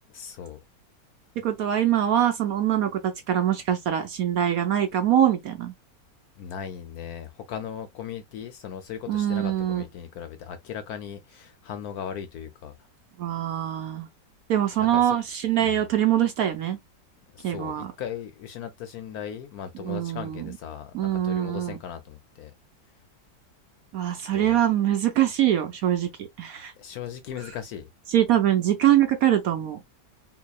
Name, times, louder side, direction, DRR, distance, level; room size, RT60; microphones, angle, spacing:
voice 1, 0.1-0.6 6.4-12.7 14.8-15.2 15.6-15.8 17.3-22.5 24.3-24.6 26.8-27.9, left 8 dB, 70° left, 1.0 m, -38 dB
voice 2, 1.4-5.7 9.1-9.8 13.2-14.1 14.5-16.8 17.4-17.9 19.8-20.5 20.9-21.8 23.9-26.7 28.1-29.8, right 11 dB, 65° right, 1.0 m, -23 dB
3.9 x 2.9 x 2.3 m
omnidirectional pair, 1.9 m